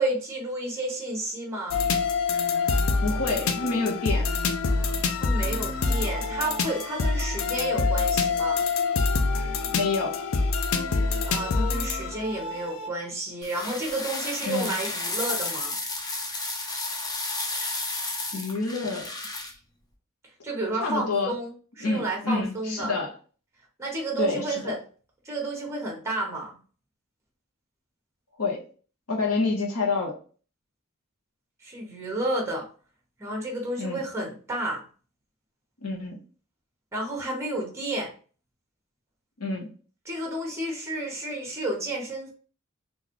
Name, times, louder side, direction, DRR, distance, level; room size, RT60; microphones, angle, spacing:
voice 1, 0.0-1.8 5.2-8.6 11.3-15.8 20.4-23.0 23.8-24.8 25.2-26.6 31.6-32.7 33.2-34.8 36.9-38.1 40.0-42.3, right 2 dB, 15° right, 0 dB, 1.0 m, -31 dB
sound 1, 1.7-12.9, left 4 dB, 70° left, 0.5 m, -26 dB
voice 2, 3.0-4.3 9.7-10.2 14.5-14.8 18.3-19.1 20.8-21.3 21.8-23.1 24.2-24.7 28.4-28.6 29.1-30.2 33.8-34.0 35.8-36.2 39.4-39.7, left 3 dB, 85° left, 0 dB, 1.0 m, -28 dB
sound 2, 13.4-19.5, left 2 dB, 15° left, 0.5 m, -32 dB
3.9 x 2.5 x 3.0 m, 0.39 s
head